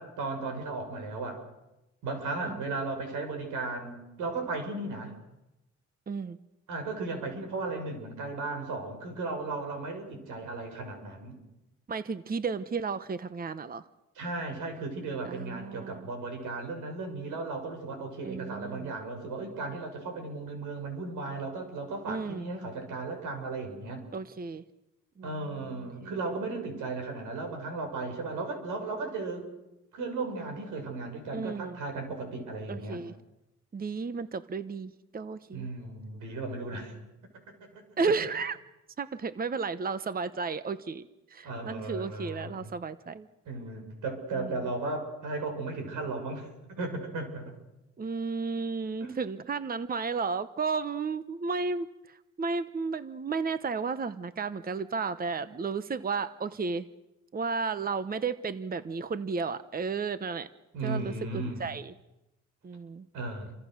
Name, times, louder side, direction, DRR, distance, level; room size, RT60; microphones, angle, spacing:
voice 1, 0.0-1.4 2.0-5.1 6.7-11.4 14.2-24.0 25.2-29.5 29.9-33.0 35.5-36.9 37.6-37.8 41.4-42.7 43.5-47.6 49.0-49.2 60.7-61.7 63.1-63.5, right 3 dB, 90° right, 5 dB, 6.9 m, -35 dB
voice 2, 6.1-6.4 11.9-13.8 15.2-16.1 18.2-18.9 22.1-22.5 24.1-24.6 25.2-26.1 31.3-31.8 32.7-33.1 33.7-35.7 38.0-38.6 39.0-43.3 44.4-44.6 48.0-56.9 57.3-60.5 60.8-61.9 62.6-63.1, right 4 dB, 30° right, 13 dB, 1.0 m, -33 dB
29.0 x 25.5 x 6.6 m, 0.94 s
cardioid pair, 90°, 30 cm